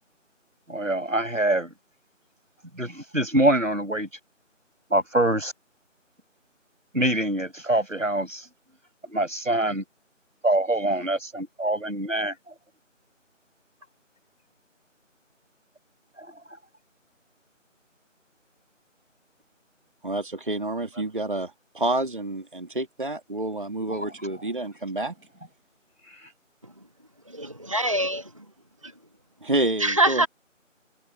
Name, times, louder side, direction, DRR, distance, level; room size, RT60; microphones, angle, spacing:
voice 1, 0.7-1.7 2.8-4.1 4.9-5.5 6.9-8.4 9.1-9.8 10.4-12.3, right 1 dB, 80° right, 6.4 m, -24 dB
voice 2, 20.0-25.1 29.4-30.3, right 2 dB, 40° right, 2.2 m, -28 dB
voice 3, 27.3-28.3 29.8-30.3, right 1 dB, 25° right, 1.3 m, -23 dB
figure-of-eight pair, 170°, 38 cm